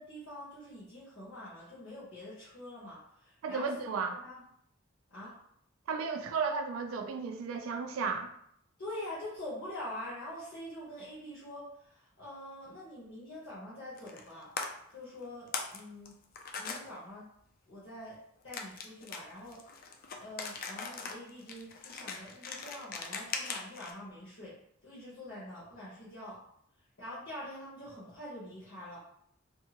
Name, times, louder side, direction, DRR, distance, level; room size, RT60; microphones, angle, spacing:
voice 1, 0.0-4.4 5.1-5.4 8.8-14.5 14.9-16.2 16.6-17.3 17.7-18.2 18.4-19.6 20.2-24.6 24.8-26.4 27.0-29.0, left 1 dB, 65° left, -10 dB, 0.9 m, -45 dB
voice 2, 3.4-4.2 5.9-8.3, right 5 dB, 90° right, 6 dB, 0.3 m, -34 dB
sound 1, 14.0-14.3 14.6-14.7 15.2-15.8 16.0-16.8 18.5-23.9, left 5 dB, 45° left, 0.3 m, -40 dB
2.6 x 2.3 x 2.8 m, 0.71 s
head